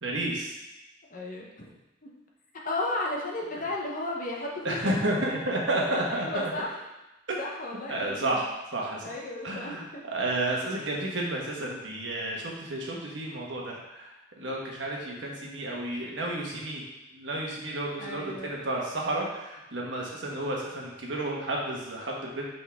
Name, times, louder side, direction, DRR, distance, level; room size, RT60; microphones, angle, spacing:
voice 1, 0.0-0.5 4.6-6.5 7.3-7.4 7.9-9.1 9.4-9.8 10.1-14.1 14.4-16.8 17.1-22.4, right 1 dB, 75° right, -2 dB, 1.3 m, -31 dB
voice 2, 1.1-1.7 2.0-2.1 2.6-5.0 6.1-6.8 7.4-8.4 9.0-10.0 11.6-11.7 18.0-18.5, left 2 dB, 45° left, -1 dB, 0.9 m, -34 dB
5.5 x 5.4 x 3.5 m, 0.99 s
head